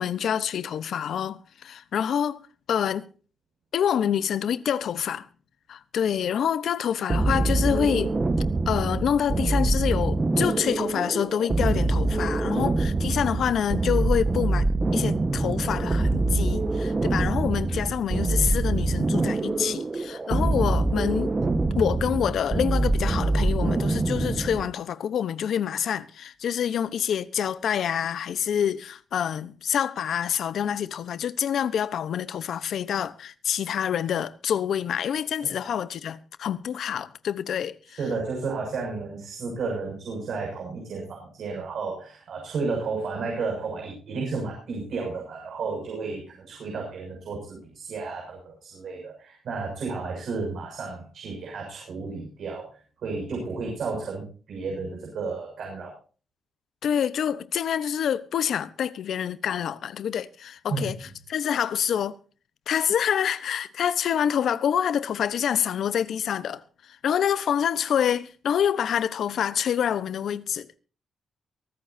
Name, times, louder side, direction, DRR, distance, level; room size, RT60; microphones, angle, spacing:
voice 1, 0.0-2.4 2.7-3.1 3.7-5.3 5.7-8.2 8.7-21.3 21.8-38.0 56.8-62.1 62.7-70.7, left 9 dB, 75° left, 0.9 m, -27 dB
sound 1, 7.1-24.7, right 2 dB, 25° right, 1.3 m, -25 dB
voice 2, 38.0-52.7 53.0-55.9 60.7-60.9, right 4 dB, 70° right, 6.5 m, -32 dB
23.5 x 13.5 x 2.7 m
cardioid pair, 105°, 0 cm